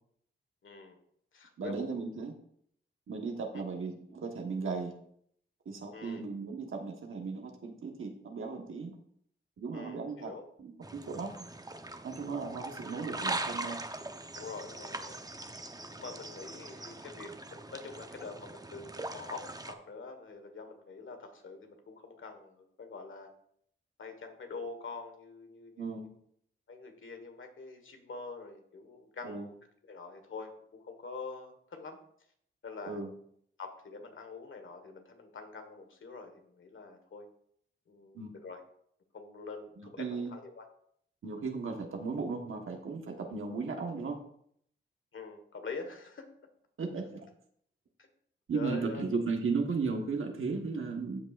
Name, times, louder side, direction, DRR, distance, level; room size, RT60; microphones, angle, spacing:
voice 1, 0.6-1.0 1.3-1.9 5.9-6.2 9.7-10.4 14.3-15.2 16.0-23.3 24.0-26.1 26.7-29.4 29.9-32.0 32.6-33.0 33.6-37.2 37.9-38.6 39.1-40.6 45.1-46.2 48.0-48.1 48.5-49.0, left 4 dB, 70° left, 6 dB, 1.5 m, -45 dB
voice 2, 1.6-2.3 3.1-4.9 5.6-8.9 9.6-10.3 10.6-11.5 12.0-13.8 25.8-26.1 29.2-29.5 32.9-33.1 38.1-38.4 39.8-40.3 41.2-44.2 46.8-47.2 48.5-51.2, right 4 dB, 70° right, 2 dB, 1.3 m, -36 dB
sound 1, 10.8-19.7, right 2 dB, 15° right, 0.8 m, -41 dB
13.5 x 5.4 x 2.5 m, 0.67 s
cardioid pair, 60°, 21 cm